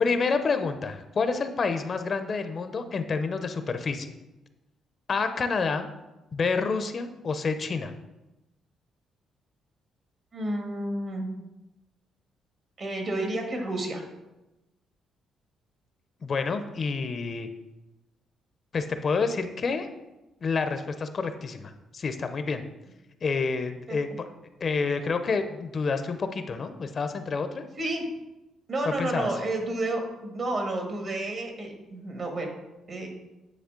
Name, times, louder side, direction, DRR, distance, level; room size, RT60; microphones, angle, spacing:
voice 1, 0.0-4.1 5.1-5.9 6.3-7.9 16.2-17.5 18.7-19.9 20.4-22.6 23.2-24.3 24.6-27.6 29.0-29.3, left 4 dB, 45° left, 9 dB, 0.5 m, -28 dB
voice 2, 10.3-11.3 12.8-14.0 23.9-24.0 27.8-28.1 28.7-32.5 32.9-33.1, right 2 dB, 50° right, 2 dB, 1.5 m, -31 dB
9.7 x 3.3 x 3.7 m, 1.0 s
cardioid pair, 90°, 0 cm